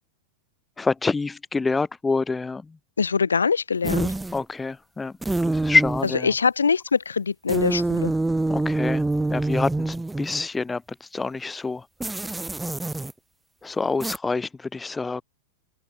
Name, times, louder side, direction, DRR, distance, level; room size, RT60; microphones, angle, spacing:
voice 1, 0.8-2.6 4.3-5.1 5.4-6.3 8.5-9.0 9.3-10.8 11.1-11.8 13.6-15.2, left 4 dB, 10° left, 2.3 m, -26 dB
voice 2, 3.0-4.1 6.2-8.1, left 5 dB, 75° left, 6.0 m, -23 dB
sound 1, 3.8-4.4 5.2-6.2 7.5-10.5 12.0-13.1 14.0-14.2, right 2 dB, 5° right, 1.5 m, -26 dB
figure-of-eight pair, 90°, 0 cm